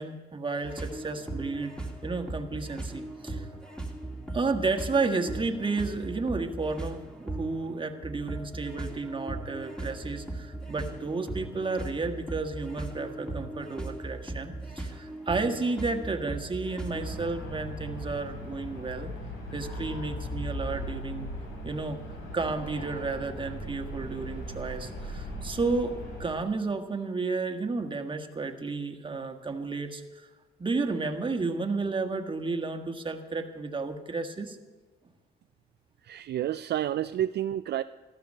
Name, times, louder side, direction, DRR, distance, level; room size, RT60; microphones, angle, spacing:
voice 1, 0.0-3.5 4.3-19.1 19.5-21.3 21.6-22.0 22.3-30.3 30.6-34.6, right 3 dB, 25° right, 5 dB, 1.5 m, -32 dB
sound 1, 0.6-17.2, right 2 dB, 5° left, 2.2 m, -38 dB
sound 2, 16.9-26.3, equal, 80° left, 5.1 m, -38 dB
voice 2, 36.0-37.8, right 11 dB, 55° right, 10 dB, 0.4 m, -30 dB
14.5 x 13.0 x 6.6 m, 1.3 s
cardioid pair, 90°, 20 cm